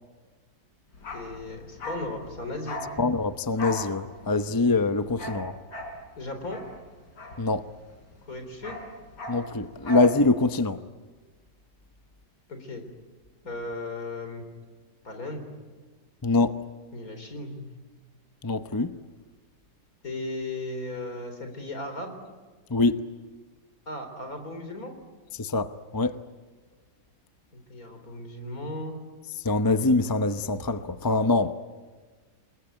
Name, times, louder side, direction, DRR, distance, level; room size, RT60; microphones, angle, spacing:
Bark, 0.9-8.0 8.2-10.2 10.4-10.6, left 1 dB, 75° left, 4.6 m, -38 dB
voice 1, 1.1-2.8 6.2-6.6 8.2-8.8 12.5-12.8 13.4-14.5 15.0-15.5 16.9-17.7 20.0-22.2 23.9-24.9 27.5-29.0, left 2 dB, 55° left, 4.3 m, -36 dB
voice 2, 3.0-5.5 7.4-7.7 9.3-10.8 16.2-16.6 18.4-18.9 22.7-23.0 25.3-26.2 29.4-31.5, left 3 dB, 25° left, 0.5 m, -24 dB
29.0 x 20.5 x 9.3 m
omnidirectional pair, 1.8 m